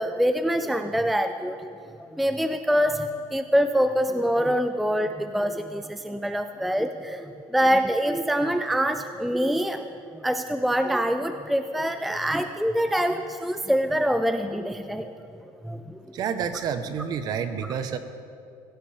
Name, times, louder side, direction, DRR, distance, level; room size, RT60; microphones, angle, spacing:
voice 1, 0.0-1.7 2.0-15.1 15.6-16.0, equal, ahead, 8 dB, 0.4 m, -25 dB
voice 2, 16.1-18.0, right 7 dB, 40° right, 9 dB, 1.0 m, -29 dB
23.5 x 16.0 x 3.5 m, 2.5 s
cardioid pair, 155°, 10 cm